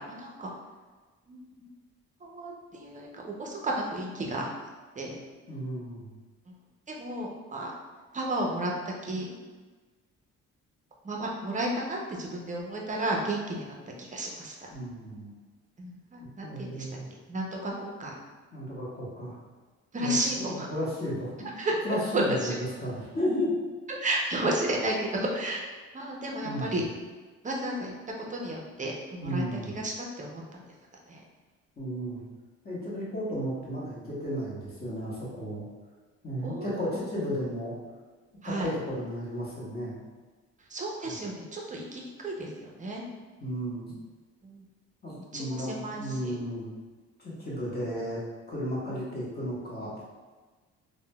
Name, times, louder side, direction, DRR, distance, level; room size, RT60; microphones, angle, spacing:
voice 1, 0.1-0.5 1.3-1.7 2.2-4.5 5.0-5.2 6.9-7.7 8.1-8.7 9.0-9.3 11.0-14.7 15.8-16.9 17.3-18.1 19.9-20.7 21.6-21.8 22.1-22.6 23.9-25.7 25.9-26.8 27.4-27.9 28.3-29.4 29.7-30.6 31.1-31.2 36.4-36.7 38.4-38.7 40.7-43.0 44.4-44.6 45.1-46.3 48.9-49.0, right 1 dB, 25° right, -1 dB, 0.6 m, -32 dB
voice 2, 5.5-6.1 14.7-15.3 16.4-17.1 18.5-19.4 20.0-21.6 21.8-23.5 26.4-26.8 29.2-29.7 31.8-32.2 32.6-35.7 36.2-37.8 38.4-40.0 41.0-41.2 43.4-43.9 45.0-46.7 47.2-48.2 48.5-50.0, equal, 30° left, -7 dB, 1.2 m, -33 dB
3.6 x 2.2 x 2.2 m, 1.3 s
cardioid pair, 90°, 30 cm